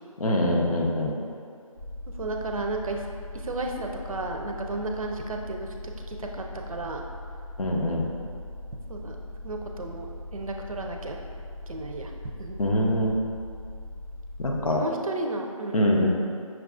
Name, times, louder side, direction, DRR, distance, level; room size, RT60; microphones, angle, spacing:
voice 1, 0.2-1.1 7.6-8.1 12.6-13.2 14.4-14.8 15.7-16.1, left 1 dB, 75° left, -1 dB, 0.7 m, -24 dB
sound 1, 1.7-14.7, left 1 dB, 10° left, 0.6 m, -40 dB
voice 2, 2.2-3.1 3.3-5.8 6.1-7.0 8.9-9.2 9.4-11.2 11.7-12.1 12.4-12.6 14.7-15.8, right 2 dB, 75° right, 3 dB, 0.5 m, -33 dB
5.9 x 2.4 x 2.4 m, 2.3 s
figure-of-eight pair, 165°, 18 cm